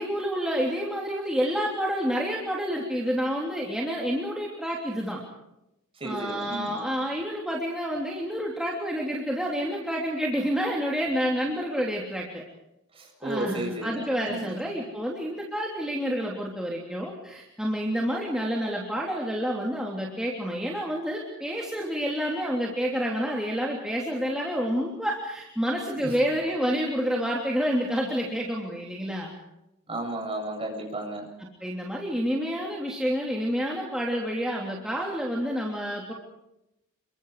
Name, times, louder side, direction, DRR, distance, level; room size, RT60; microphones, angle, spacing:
voice 1, 0.0-5.2 6.0-12.4 13.2-29.3 31.6-36.1, equal, 5° right, -3 dB, 3.2 m, -29 dB
voice 2, 6.0-6.9 12.9-14.6 26.0-26.2 29.9-31.3, right 1 dB, 25° right, 1 dB, 7.6 m, -33 dB
28.5 x 23.5 x 4.9 m, 0.88 s
head